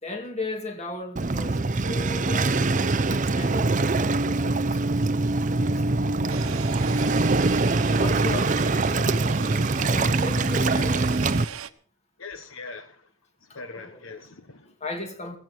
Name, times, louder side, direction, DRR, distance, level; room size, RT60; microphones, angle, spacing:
voice 1, 0.0-3.8 4.3-4.9 5.8-7.6 7.9-11.1 11.4-11.5 13.9-14.0 14.6-15.4, left 2 dB, 30° left, 2.5 m, -37 dB
Waves surf, 1.2-11.4, right 3 dB, 35° right, 0.6 m, -23 dB
sound 1, 6.3-11.7, right 8 dB, 80° right, 1.0 m, -38 dB
voice 2, 12.2-13.1 13.4-14.7, left 4 dB, 70° left, 1.2 m, -41 dB
16.0 x 15.5 x 4.5 m
head